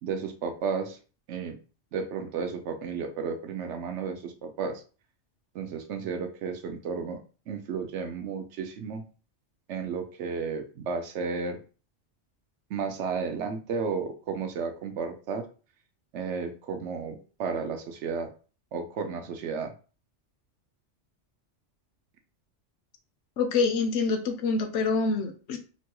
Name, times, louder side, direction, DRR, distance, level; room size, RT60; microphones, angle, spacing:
voice 1, 0.0-1.0 1.3-1.6 1.9-4.8 5.5-7.2 7.5-9.0 9.7-11.6 12.7-15.5 16.1-18.3 18.7-19.7, right 5 dB, 75° right, 5 dB, 0.9 m, -33 dB
voice 2, 23.4-25.6, left 4 dB, 75° left, 6 dB, 0.9 m, -26 dB
3.0 x 2.2 x 2.9 m, 0.36 s
omnidirectional pair, 1.2 m